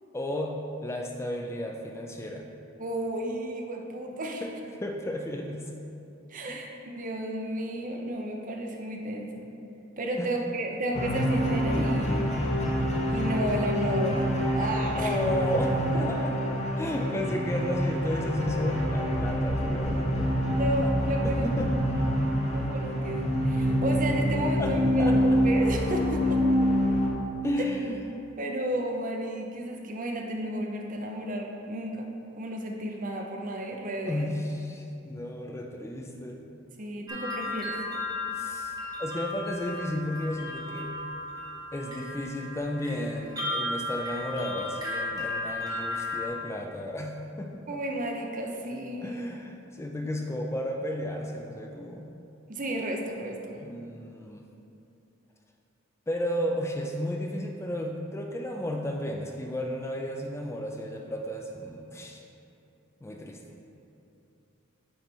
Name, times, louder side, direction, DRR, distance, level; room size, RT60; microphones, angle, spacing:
voice 1, 0.1-2.5 4.4-4.5 4.8-5.7 6.5-6.6 10.2-10.3 15.0-16.4 16.8-20.3 21.2-21.7 24.6-25.2 27.4-28.0 34.1-36.4 38.3-40.9 41.7-47.6 49.0-52.1 53.6-54.4 56.1-62.2 63.0-63.4, left 1 dB, 15° left, 2 dB, 0.3 m, -33 dB
voice 2, 2.8-4.5 6.3-9.3 10.0-12.3 13.1-15.2 20.5-21.5 22.5-26.4 28.4-34.3 36.8-37.8 47.7-49.2 52.5-53.6, right 1 dB, 40° right, 2 dB, 0.6 m, -32 dB
sound 1, 10.9-27.1, equal, 35° left, 0.8 m, -26 dB
sound 2, 37.1-46.3, left 2 dB, 20° right, 1.1 m, -35 dB
9.1 x 3.2 x 4.4 m, 2.7 s
head